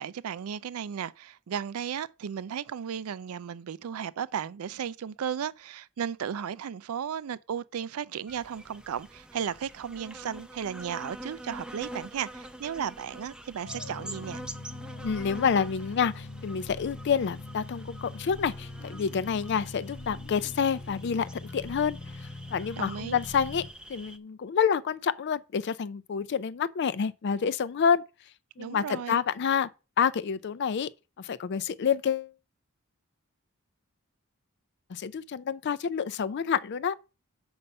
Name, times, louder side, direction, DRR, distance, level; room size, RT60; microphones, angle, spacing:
voice 1, 0.0-14.4 22.8-23.2 28.6-29.2, right 8 dB, 90° right, 0.4 m, -35 dB
sound 1, 8.3-24.2, right 1 dB, 5° right, 0.5 m, -46 dB
sound 2, 13.6-23.7, left 2 dB, 75° left, 1.1 m, -42 dB
voice 2, 15.0-23.6 23.9-28.0 28.6-29.7 30.0-30.9 31.2-32.3 34.9-37.0, left 7 dB, 55° left, 0.4 m, -28 dB
6.9 x 5.5 x 5.2 m
head